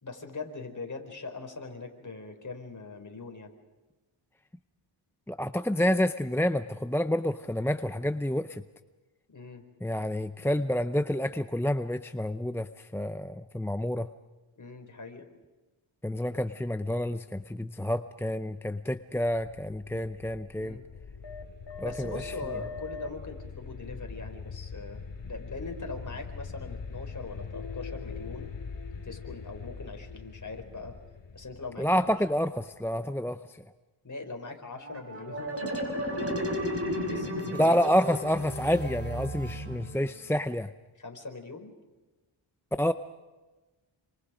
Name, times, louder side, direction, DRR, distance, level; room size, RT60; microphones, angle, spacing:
voice 1, 0.0-3.5 9.3-9.7 14.6-15.3 20.6-20.8 21.8-28.5 29.0-31.0 31.3-32.2 34.0-37.8 41.0-41.7, left 3 dB, 35° left, 4 dB, 4.8 m, -41 dB
voice 2, 5.3-8.6 9.8-14.1 16.0-20.8 21.8-22.3 31.8-33.4 37.6-40.7 42.8-42.9, equal, 5° left, 10 dB, 0.6 m, -28 dB
sound 1, 19.3-32.9, left 5 dB, 60° left, 2.5 m, -42 dB
sound 2, 34.8-40.2, equal, 30° right, 5.7 m, -34 dB
28.5 x 25.5 x 5.1 m, 1.2 s
wide cardioid pair, 85°, 49 cm